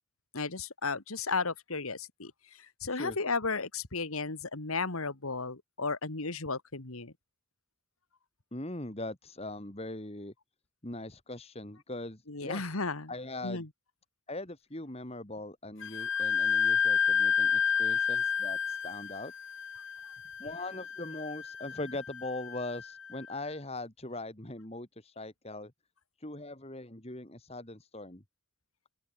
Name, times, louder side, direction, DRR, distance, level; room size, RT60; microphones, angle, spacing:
voice 1, 0.3-2.3 2.8-7.1 12.3-13.1 13.4-13.7, left 4 dB, 80° left, 2.1 m, -34 dB
voice 2, 8.5-10.3 10.8-12.7 13.1-13.6 14.3-19.3 20.4-25.7 26.2-28.2, left 2 dB, 30° left, 2.4 m, -41 dB
Wind instrument woodwind instrument, 15.8-23.2, left 7 dB, 60° left, 1.5 m, -30 dB
open air
head